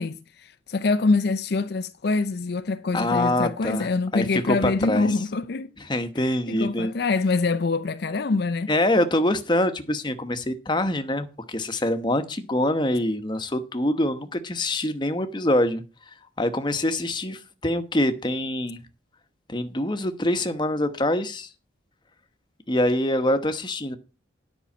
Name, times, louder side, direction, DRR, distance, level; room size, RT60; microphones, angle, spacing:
voice 1, 0.0-5.8 6.2-8.7, left 3 dB, 55° left, 0.5 m, -25 dB
voice 2, 2.9-5.2 5.8-6.9 8.7-18.8 19.5-21.5 22.7-24.0, left 1 dB, 25° left, 1.0 m, -25 dB
10.0 x 5.5 x 7.2 m
head